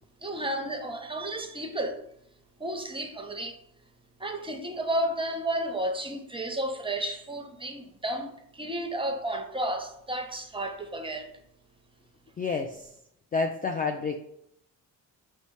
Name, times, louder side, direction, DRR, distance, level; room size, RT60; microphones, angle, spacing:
voice 1, 0.2-2.0 2.6-3.6 4.2-11.3, right 1 dB, 10° right, 5 dB, 0.8 m, -32 dB
voice 2, 12.4-12.9 13.3-14.2, left 4 dB, 20° left, 4 dB, 0.4 m, -29 dB
5.2 x 2.2 x 4.7 m, 0.76 s
hypercardioid pair, 45°, 47 cm